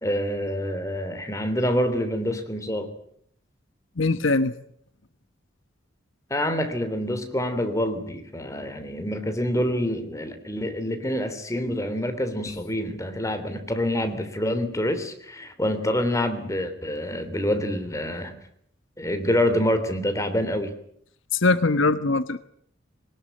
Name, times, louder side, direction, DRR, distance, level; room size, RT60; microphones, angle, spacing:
voice 1, 0.0-2.9 6.3-18.4 19.0-20.8, left 1 dB, 15° left, 8 dB, 3.2 m, -26 dB
voice 2, 4.0-4.5 21.3-22.4, left 3 dB, 75° left, 13 dB, 1.1 m, -21 dB
22.0 x 20.0 x 9.2 m, 0.68 s
head